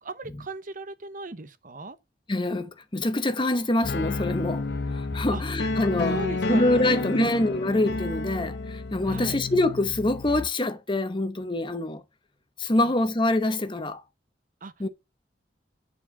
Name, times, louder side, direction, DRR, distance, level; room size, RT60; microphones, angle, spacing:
voice 1, 0.0-2.0 5.3-5.4 6.0-7.3 9.1-9.4 12.8-12.9 14.6-14.7, right 2 dB, 45° right, 0.8 m, -37 dB
voice 2, 2.3-6.2 6.5-12.0 12.6-14.0 14.8-14.9, left 2 dB, 25° left, 0.9 m, -25 dB
sound 1, 3.8-10.5, left 3 dB, 70° left, 0.7 m, -30 dB
9.8 x 4.6 x 5.7 m
head